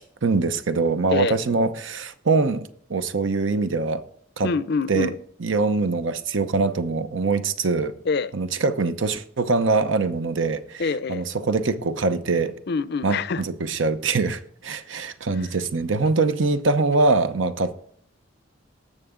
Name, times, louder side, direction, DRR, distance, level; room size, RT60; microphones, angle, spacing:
voice 1, 0.2-4.0 4.4-4.5 4.9-5.1 5.4-7.9 8.3-10.8 11.1-12.6 13.0-17.7, right 3 dB, 75° right, 0.8 m, -23 dB
voice 2, 4.4-5.2 8.1-8.3 10.8-11.3 12.7-13.4 15.3-15.5, left 4 dB, 55° left, 0.5 m, -25 dB
18.0 x 6.9 x 3.7 m
head